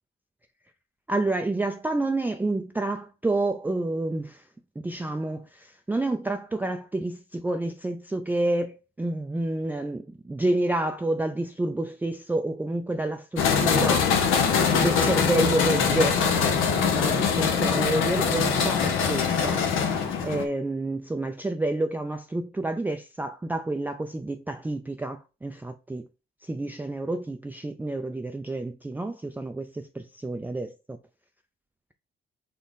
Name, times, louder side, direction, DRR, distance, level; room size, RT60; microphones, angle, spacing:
voice 1, 1.1-4.4 4.8-14.1 14.7-19.7 20.2-26.1 26.4-31.0, right 2 dB, 10° right, 0.4 m, -29 dB
sound 1, 13.4-20.5, left 6 dB, 85° left, 0.9 m, -23 dB
4.1 x 3.6 x 3.6 m
cardioid pair, 90°, 20 cm